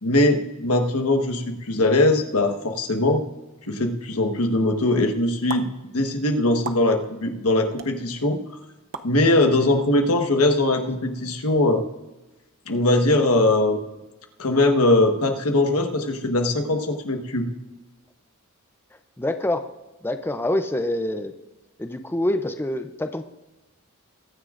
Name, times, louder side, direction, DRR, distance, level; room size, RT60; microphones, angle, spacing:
voice 1, 0.0-3.2 3.6-5.7 5.9-8.4 9.0-11.8 12.7-13.8 14.4-17.5, left 2 dB, 90° left, 4 dB, 1.4 m, -21 dB
sound 1, 5.5-5.6 6.6-6.8 7.8-7.9 8.9-9.1, right 5 dB, 65° right, 0.7 m, -32 dB
voice 2, 19.2-19.7 20.0-21.3 21.8-23.2, left 1 dB, 10° left, 8 dB, 0.5 m, -26 dB
22.0 x 9.7 x 2.5 m, 1.1 s
head